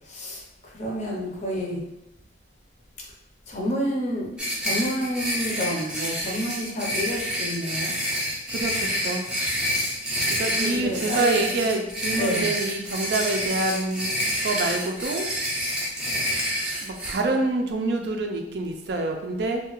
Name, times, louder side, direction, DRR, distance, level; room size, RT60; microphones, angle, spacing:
voice 1, 0.1-1.8 3.5-7.9 10.6-11.3 12.1-12.5, equal, 40° left, -2 dB, 0.6 m, -29 dB
sound 1, 4.4-17.1, equal, 5° right, 0.5 m, -28 dB
voice 2, 8.5-9.3 10.4-15.2 16.8-19.6, right 2 dB, 60° right, 3 dB, 0.4 m, -26 dB
2.8 x 2.3 x 3.0 m, 0.87 s
head